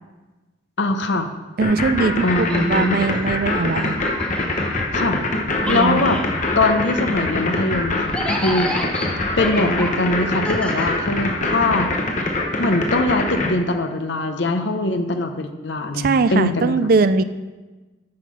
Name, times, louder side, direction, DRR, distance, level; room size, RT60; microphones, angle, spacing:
voice 1, 0.8-1.3 2.2-3.0 4.9-5.2 5.7-6.2 6.5-8.7 9.4-11.9 12.6-16.8, left 2 dB, 60° left, 7 dB, 0.8 m, -22 dB
sound 1, 1.6-13.5, left 2 dB, 40° left, 1.1 m, -23 dB
voice 2, 1.6-4.0 5.6-6.0 15.9-17.2, right 4 dB, 45° right, 13 dB, 0.4 m, -20 dB
sound 2, 2.2-5.3 5.6-11.6, left 1 dB, 5° left, 0.8 m, -32 dB
8.6 x 5.9 x 6.3 m, 1.2 s
head